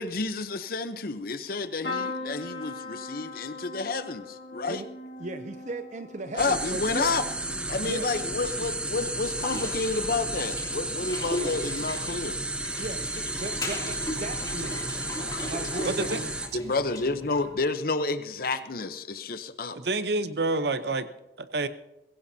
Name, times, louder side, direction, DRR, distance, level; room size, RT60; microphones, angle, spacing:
voice 1, 0.0-4.8 6.3-7.3 7.7-12.4 16.5-19.8, left 3 dB, 55° left, 11 dB, 0.8 m, -30 dB
sound 1, 1.8-9.7 10.1-10.7 11.9-12.1 12.4-12.5, left 2 dB, 85° left, 1.5 m, -40 dB
voice 2, 5.2-7.1 7.6-8.1 12.8-14.7 15.5-16.3, right 2 dB, 40° right, 8 dB, 0.6 m, -37 dB
sound 2, 6.4-16.5, right 2 dB, 5° right, 1.0 m, -33 dB
sound 3, 8.3-17.6, left 1 dB, 25° left, 3.0 m, -38 dB
voice 3, 15.9-16.2 19.7-21.0 21.4-21.7, right 2 dB, 65° right, 12 dB, 0.8 m, -28 dB
21.0 x 16.0 x 2.8 m, 0.95 s
head